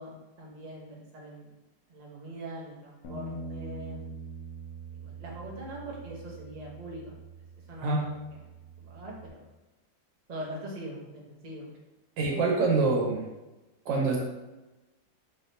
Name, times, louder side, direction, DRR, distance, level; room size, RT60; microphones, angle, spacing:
voice 1, 0.0-1.5 1.9-4.1 4.9-7.2 7.7-8.2 8.8-9.4 10.3-11.7, right 1 dB, 60° right, -2 dB, 0.4 m, -42 dB
Bass guitar, 3.0-9.3, right 4 dB, 65° left, 1.1 m, -43 dB
voice 2, 12.2-13.2 13.8-14.3, right 3 dB, 75° right, -1 dB, 1.5 m, -25 dB
3.9 x 3.4 x 2.7 m, 1.1 s
omnidirectional pair, 2.0 m